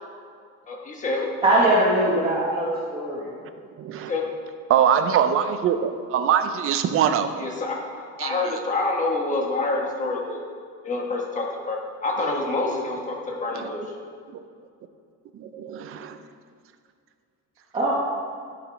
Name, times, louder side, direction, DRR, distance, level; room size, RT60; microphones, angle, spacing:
voice 1, 0.7-1.3 4.1-4.2 7.4-10.4 10.8-13.8, left 3 dB, 20° left, 0 dB, 1.3 m, -27 dB
voice 2, 1.4-3.3 17.7-17.9, right 1 dB, 15° right, -7 dB, 1.1 m, -21 dB
voice 3, 3.8-4.1 4.7-7.4 8.2-8.4 13.5-13.7 14.3-14.4 15.3-16.2, right 8 dB, 40° right, 8 dB, 0.6 m, -23 dB
12.0 x 5.2 x 5.1 m, 2.2 s
cardioid pair, 170°, 34 cm